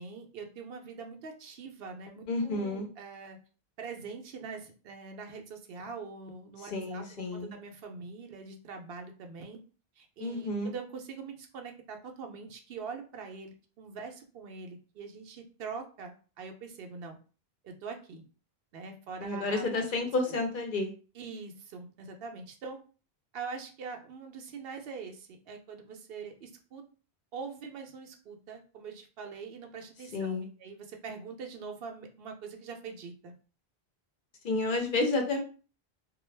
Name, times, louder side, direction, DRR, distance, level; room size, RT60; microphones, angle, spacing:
voice 1, 0.0-3.4 3.8-9.6 10.0-17.2 17.6-18.2 18.7-20.0 21.1-22.8 23.3-26.8 27.3-33.3, right 5 dB, 70° right, 4 dB, 0.8 m, -43 dB
voice 2, 2.3-2.9 6.7-7.5 10.2-10.7 19.2-20.9 30.1-30.5 34.4-35.4, left 2 dB, 60° left, 4 dB, 0.7 m, -30 dB
2.4 x 2.2 x 3.1 m, 0.36 s
omnidirectional pair, 1.0 m